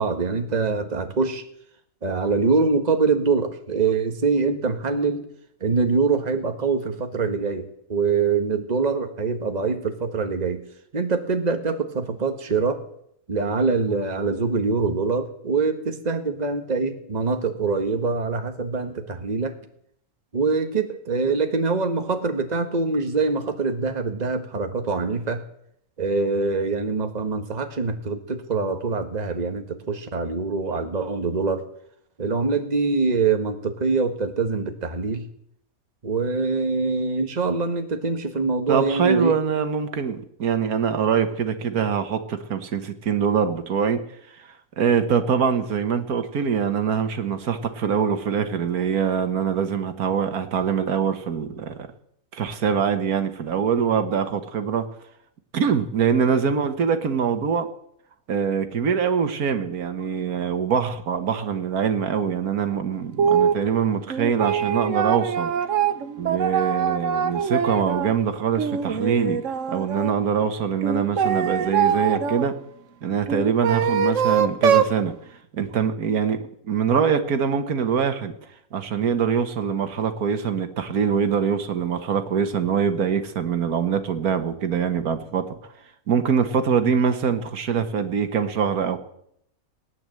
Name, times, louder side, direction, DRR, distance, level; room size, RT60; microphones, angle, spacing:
voice 1, 0.0-1.4 2.0-5.2 5.6-10.6 10.9-12.8 13.3-19.6 20.3-25.4 26.0-31.6 32.2-35.3 36.0-39.4, right 4 dB, 30° right, 6 dB, 1.4 m, -24 dB
voice 2, 38.7-44.0 44.4-51.9 52.3-54.8 55.5-57.7 58.3-65.5 66.2-69.4 69.7-72.5 73.0-75.1 75.5-76.4 76.7-78.3 78.7-85.6 86.1-89.0, right 7 dB, 85° right, 9 dB, 1.8 m, -23 dB
sound 1, 63.2-63.6 64.1-68.1 68.5-70.1 70.8-72.4 73.3-75.0, right 7 dB, 60° right, 1.2 m, -23 dB
18.5 x 9.8 x 7.7 m, 0.72 s
omnidirectional pair, 1.5 m